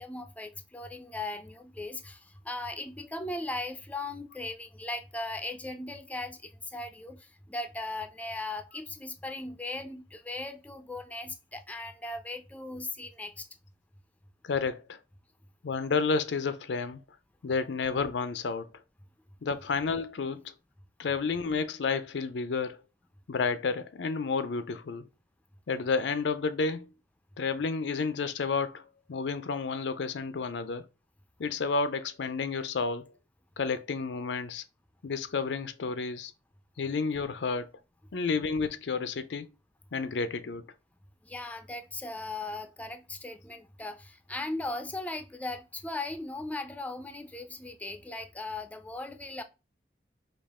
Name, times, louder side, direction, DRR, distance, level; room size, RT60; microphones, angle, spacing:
voice 1, 0.0-13.5 41.2-49.4, left 2 dB, 10° left, 0.4 m, -38 dB
voice 2, 14.4-15.0 15.6-17.0 17.4-18.7 19.4-20.5 21.0-22.8 23.3-25.1 25.7-26.9 27.4-30.8 31.4-33.1 33.6-34.6 35.0-36.3 36.8-37.7 38.1-39.5 39.9-40.6, left 4 dB, 85° left, 0.5 m, -31 dB
5.2 x 2.4 x 3.6 m
head